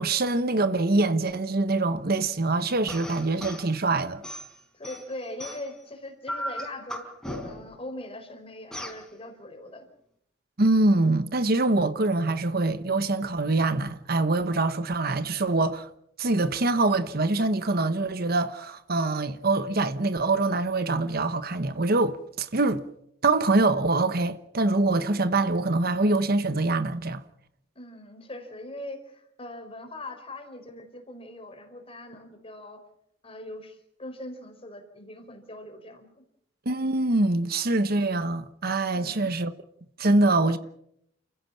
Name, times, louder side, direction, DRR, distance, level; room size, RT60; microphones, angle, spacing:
voice 1, 0.0-4.2 10.6-15.9 16.2-22.8 23.2-27.2 36.6-39.5 40.0-40.6, right 2 dB, 55° right, 1.2 m, -24 dB
sound 1, 2.9-3.7 4.2-5.8 6.3-7.8 8.7-9.0, equal, 5° left, 4.5 m, -37 dB
voice 2, 4.7-7.1 7.4-9.9 27.7-32.8 33.2-36.2 38.9-39.3, left 1 dB, 30° left, 4.7 m, -41 dB
29.0 x 16.0 x 7.4 m
head